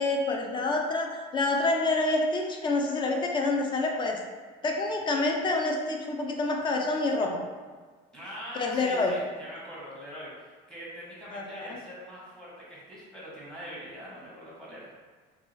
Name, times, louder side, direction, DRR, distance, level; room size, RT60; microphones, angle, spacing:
voice 1, 0.0-4.2 4.6-7.4 8.5-9.1 11.3-11.8, left 2 dB, 25° left, 1 dB, 0.3 m, -27 dB
voice 2, 8.1-14.9, equal, 5° left, -8 dB, 0.9 m, -43 dB
2.6 x 2.3 x 3.0 m, 1.5 s
cardioid pair, 145°, 19 cm